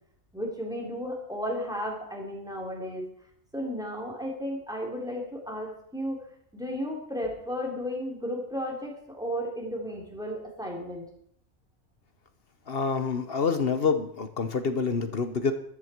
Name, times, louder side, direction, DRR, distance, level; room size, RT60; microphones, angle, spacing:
voice 1, 0.3-3.0 3.5-6.2 6.5-11.0, equal, 5° right, -1 dB, 3.7 m, -34 dB
voice 2, 12.7-15.5, left 5 dB, 45° left, 10 dB, 1.2 m, -27 dB
14.0 x 13.0 x 4.6 m, 0.66 s
omnidirectional pair, 1.4 m